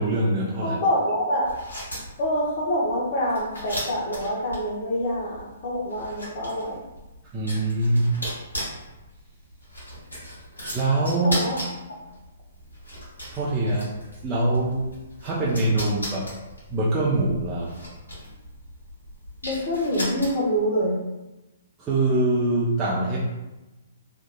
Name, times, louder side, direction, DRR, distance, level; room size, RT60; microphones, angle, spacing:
voice 1, 0.0-0.8 7.3-8.1 10.7-11.4 13.3-13.9 14.2-14.8 15.2-16.3 16.7-17.7 21.8-23.2, right 2 dB, 20° right, -7 dB, 0.5 m, -23 dB
voice 2, 0.6-1.5 2.2-6.8 11.2-11.6 19.4-21.0, equal, 45° left, -2 dB, 0.7 m, -26 dB
sound 1, 1.4-20.6, equal, 85° left, 1.5 m, -38 dB
2.8 x 2.3 x 2.2 m, 1.0 s
figure-of-eight pair, 125°, 0 cm